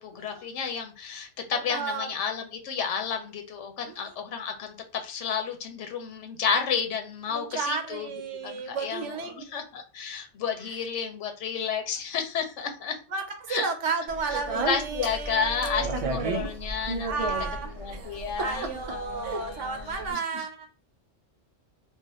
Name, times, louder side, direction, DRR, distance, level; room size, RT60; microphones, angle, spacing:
voice 1, 0.0-4.7 5.0-8.1 8.4-12.9 13.5-13.7 14.5-17.1 17.8-20.5, left 6 dB, 90° left, 6 dB, 1.0 m, -31 dB
voice 2, 1.7-2.1 3.8-4.0 7.3-9.5 10.6-10.8 13.1-16.5 17.1-17.7 18.4-20.8, right 4 dB, 90° right, 5 dB, 1.0 m, -33 dB
Speech, 14.1-20.1, right 3 dB, 60° right, 0.3 m, -33 dB
2.5 x 2.2 x 4.0 m, 0.34 s
omnidirectional pair, 1.2 m